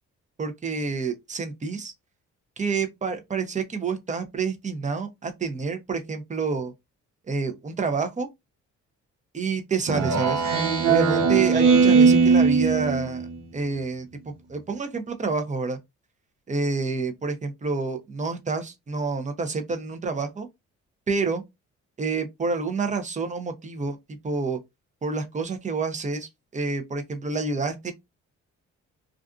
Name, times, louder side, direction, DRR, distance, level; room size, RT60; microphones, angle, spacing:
voice 1, 0.4-1.9 2.6-6.7 7.3-8.3 9.3-10.4 10.9-13.3 13.5-15.8 16.5-20.5 21.1-21.4 22.0-24.0 24.2-24.6 25.0-27.9, right 4 dB, 25° right, 0.6 m, -28 dB
Speech synthesizer, 9.9-13.4, right 5 dB, 80° right, 0.7 m, -19 dB
2.4 x 2.4 x 2.4 m
cardioid pair, 90°, 30 cm